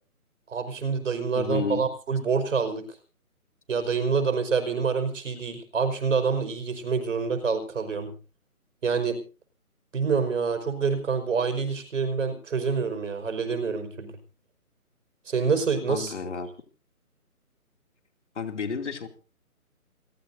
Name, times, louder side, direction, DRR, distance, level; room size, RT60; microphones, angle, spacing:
voice 1, 0.5-2.8 3.7-8.1 8.8-9.2 9.9-14.2 15.3-16.1, right 5 dB, 55° right, 8 dB, 5.1 m, -27 dB
voice 2, 1.3-1.9 15.9-16.6 18.3-19.1, left 5 dB, 50° left, 6 dB, 2.8 m, -31 dB
28.5 x 16.0 x 2.7 m, 0.36 s
figure-of-eight pair, 160°, 44 cm